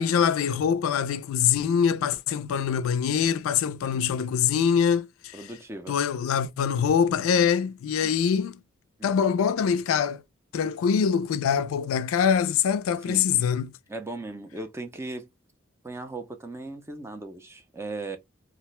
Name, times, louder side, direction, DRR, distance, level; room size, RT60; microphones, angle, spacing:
voice 1, 0.0-5.5 5.9-8.6 9.0-10.2 10.5-13.7, left 7 dB, 80° left, 0.3 m, -24 dB
voice 2, 5.3-6.0 8.0-8.2 9.0-9.2 10.6-10.7 13.1-13.3 13.9-15.3 15.8-18.2, right 2 dB, 15° right, 0.4 m, -38 dB
2.4 x 2.1 x 2.9 m
head